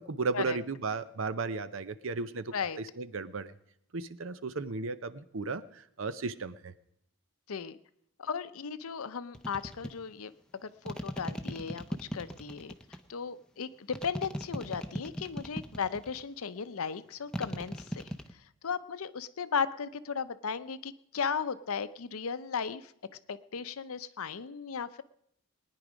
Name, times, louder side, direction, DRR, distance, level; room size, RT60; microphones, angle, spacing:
voice 1, 0.0-3.5 3.9-6.7, right 4 dB, 60° right, 14 dB, 0.7 m, -35 dB
voice 2, 8.2-10.3 10.6-12.7 13.1-18.1 18.6-22.9 23.3-25.0, left 6 dB, 75° left, 14 dB, 0.6 m, -36 dB
sound 1, 9.3-9.9 10.9-13.0 13.9-16.2 17.3-18.3, equal, 5° left, 0.7 m, -37 dB
21.0 x 9.9 x 5.1 m, 0.76 s
head